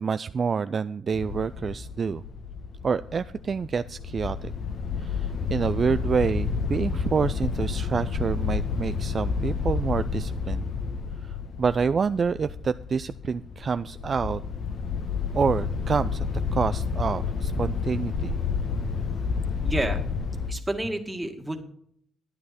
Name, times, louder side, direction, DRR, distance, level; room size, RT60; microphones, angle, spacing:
voice 1, 0.0-2.2 2.8-4.5 5.0-10.6 11.2-14.4 15.3-16.2 16.5-18.3, right 5 dB, 40° right, 13 dB, 0.3 m, -27 dB
sound 1, 1.1-20.5, left 5 dB, 60° left, 1.5 m, -30 dB
voice 2, 19.6-20.0 20.5-21.6, right 1 dB, 10° right, 4 dB, 1.8 m, -30 dB
12.0 x 9.4 x 4.2 m, 0.67 s
cardioid pair, 90°, 0 cm